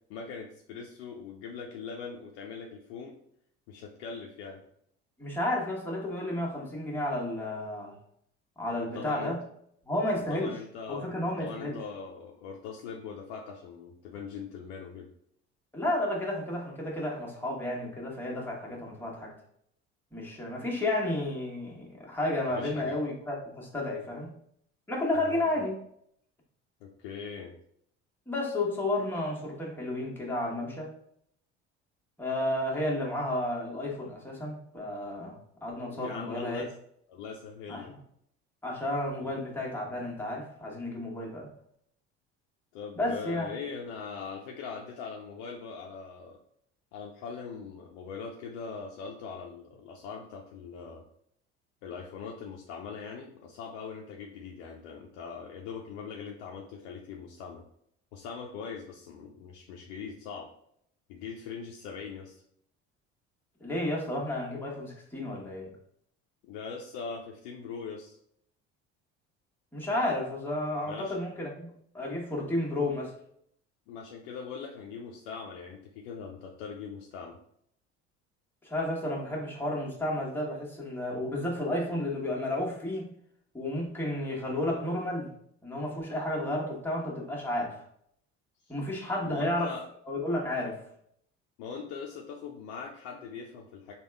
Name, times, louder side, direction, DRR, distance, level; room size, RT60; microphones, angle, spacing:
voice 1, 0.1-3.2 3.7-4.6 8.8-9.3 10.3-15.1 22.6-23.0 25.2-25.5 26.8-27.5 35.9-36.7 37.1-37.9 39.2-39.4 42.7-46.4 46.9-51.0 51.8-57.6 58.1-60.5 61.1-62.4 66.4-68.2 70.8-71.1 73.9-77.4 88.6-88.7 89.2-89.9 91.6-93.9, left 5 dB, 75° left, 1 dB, 0.5 m, -41 dB
voice 2, 5.2-7.9 8.6-9.4 9.8-10.5 10.9-11.8 15.7-19.3 20.1-24.3 24.9-25.8 28.3-30.9 32.2-35.3 35.6-36.6 37.7-38.0 38.6-41.5 43.0-43.5 63.6-65.7 69.7-73.1 78.6-83.1 83.5-85.3 85.6-87.8 88.7-89.7 90.1-90.8, left 1 dB, 5° left, -4 dB, 1.3 m, -32 dB
3.4 x 2.3 x 3.4 m, 0.70 s
hypercardioid pair, 70°, 33 cm